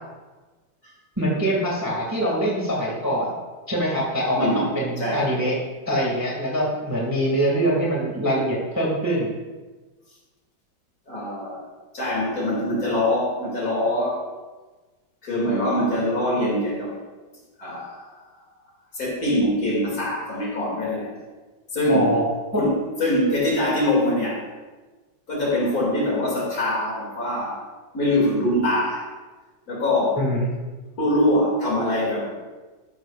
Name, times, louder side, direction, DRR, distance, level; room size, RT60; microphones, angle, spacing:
voice 1, 1.2-3.3 3.7-5.5 5.9-9.3 21.8-22.2 22.5-22.6 30.1-30.5, right 1 dB, 10° right, -3 dB, 1.9 m, -23 dB
voice 2, 4.4-4.7 5.0-5.3 11.1-11.6 11.9-14.2 15.2-16.9 17.6-18.1 18.9-21.1 21.7-22.1 22.5-24.4 25.3-27.6 27.9-29.0 29.7-30.2 31.0-32.3, left 1 dB, 50° left, -3 dB, 3.0 m, -23 dB
13.0 x 10.5 x 2.4 m, 1.3 s
omnidirectional pair, 2.1 m